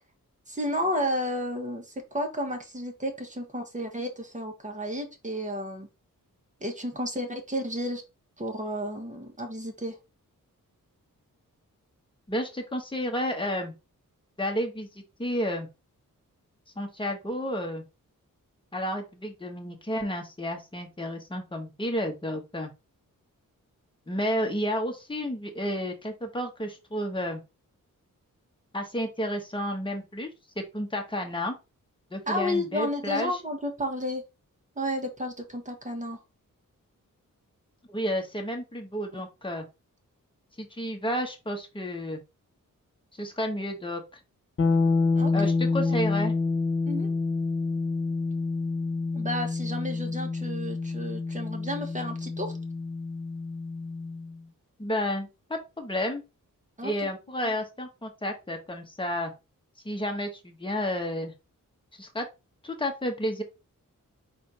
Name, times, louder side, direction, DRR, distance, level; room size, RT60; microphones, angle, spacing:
voice 1, 0.5-5.9 6.6-8.0 8.4-10.0 32.3-34.2 34.8-36.2 45.2-45.5 45.9-46.0 46.9-47.1 49.1-52.6 56.8-57.1 57.4-57.5, equal, 20° right, 4 dB, 1.2 m, -32 dB
voice 2, 12.3-13.7 14.4-15.7 16.8-17.8 18.7-22.7 24.1-27.4 28.7-30.3 30.6-31.6 32.1-33.3 37.9-39.6 40.6-42.2 43.1-44.0 45.3-46.3 54.8-56.2 56.8-59.3 59.8-61.3 62.0-62.3 62.6-63.4, equal, 15° left, 3 dB, 1.1 m, -31 dB
sound 1, 44.6-54.4, left 3 dB, 40° left, 0.8 m, -28 dB
4.2 x 2.6 x 4.2 m, 0.27 s
cardioid pair, 75°, 34 cm